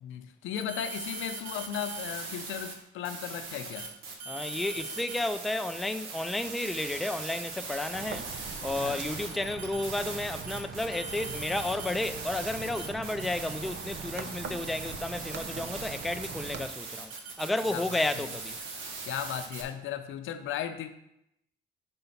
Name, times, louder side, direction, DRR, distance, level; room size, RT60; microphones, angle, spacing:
voice 1, 0.0-3.9 8.8-9.0 17.7-18.0 19.1-20.9, left 9 dB, 80° left, 0.7 m, -36 dB
sound 1, 0.6-2.7 3.0-19.6, right 4 dB, 85° right, 1.3 m, -40 dB
voice 2, 4.3-8.3 8.6-17.1 17.4-18.6, left 2 dB, ahead, 0.3 m, -32 dB
sound 2, 7.9-16.7, right 5 dB, 60° right, 0.8 m, -42 dB
5.6 x 5.3 x 5.7 m
cardioid pair, 90°, 20 cm